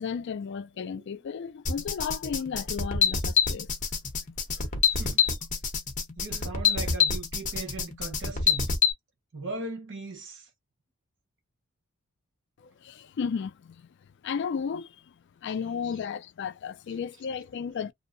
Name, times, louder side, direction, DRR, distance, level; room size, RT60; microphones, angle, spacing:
voice 1, 0.0-3.7 4.5-4.7 12.6-13.9 14.2-15.0 15.4-17.9, left 6 dB, 50° left, 0.3 m, -34 dB
sound 1, 1.7-8.9, left 6 dB, 35° left, 0.8 m, -26 dB
voice 2, 4.9-5.2 6.2-8.7 9.3-10.5, right 3 dB, 55° right, 1.0 m, -38 dB
2.6 x 2.0 x 2.5 m
head